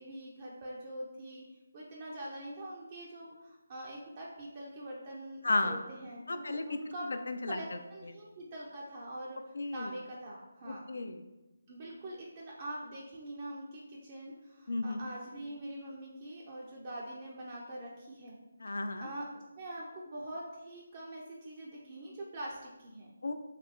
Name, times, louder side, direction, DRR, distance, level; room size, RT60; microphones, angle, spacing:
voice 1, 0.0-1.4 1.7-7.0 7.5-10.8 11.7-18.4 18.7-23.1, right 1 dB, 30° right, -4 dB, 0.5 m, -44 dB
voice 2, 5.4-5.8 6.3-7.8 9.5-9.9 10.7-11.2 14.7-15.1 18.6-19.1 23.2-23.3, left 2 dB, 60° left, 8 dB, 0.4 m, -34 dB
3.2 x 2.9 x 3.6 m, 1.0 s
figure-of-eight pair, 150°, 0 cm